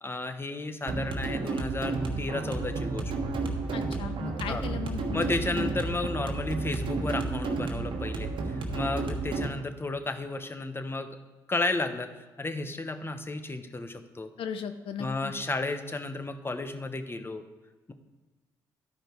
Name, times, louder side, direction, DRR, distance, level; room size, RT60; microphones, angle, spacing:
voice 1, 0.0-3.1 4.5-4.6 5.1-11.1 11.5-14.3 15.0-17.4, left 2 dB, 25° left, 8 dB, 1.0 m, -33 dB
sound 1, 0.9-9.5, right 3 dB, 60° right, 1.3 m, -31 dB
voice 2, 3.7-5.7 14.4-15.3, left 7 dB, 70° left, 9 dB, 0.7 m, -37 dB
12.0 x 5.0 x 4.6 m, 1.2 s
hypercardioid pair, 50°, 9 cm